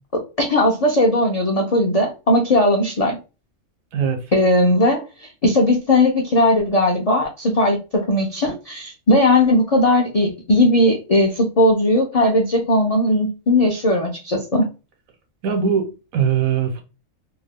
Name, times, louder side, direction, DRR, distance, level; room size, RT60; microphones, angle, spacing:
voice 1, 0.1-3.2 4.3-14.7, left 1 dB, 65° left, 0.3 m, -18 dB
voice 2, 15.4-16.8, right 7 dB, 90° right, 1.2 m, -21 dB
2.6 x 2.3 x 3.4 m
omnidirectional pair, 1.4 m